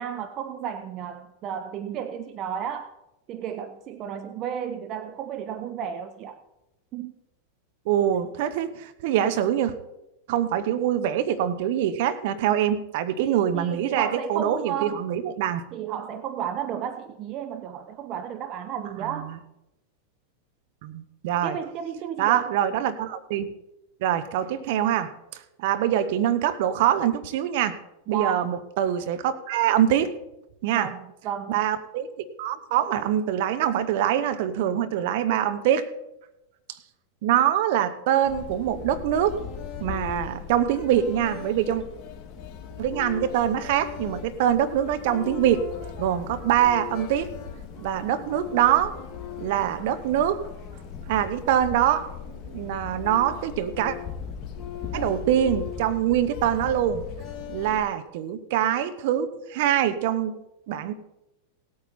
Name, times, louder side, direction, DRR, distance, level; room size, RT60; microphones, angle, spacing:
voice 1, 0.0-2.9 3.3-6.4 6.9-7.1 13.2-15.0 15.7-19.3 21.4-22.5 28.1-28.4 30.7-31.6, right 8 dB, 40° right, 10 dB, 0.8 m, -33 dB
voice 2, 7.9-9.8 10.3-15.6 19.0-19.3 20.8-21.6 22.2-23.5 24.0-25.1 25.6-27.8 28.1-30.1 30.6-30.9 31.5-35.9 37.2-39.3 39.8-41.8 42.8-45.7 46.0-47.3 47.8-48.9 49.4-50.4 51.1-52.0 52.4-53.9 54.9-57.0 57.5-60.4 60.7-60.9, right 10 dB, 60° right, 10 dB, 1.0 m, -24 dB
sound 1, 38.2-57.8, left 7 dB, 30° left, 2.5 m, -38 dB
17.5 x 8.7 x 4.2 m, 0.91 s
hypercardioid pair, 95°, 0 cm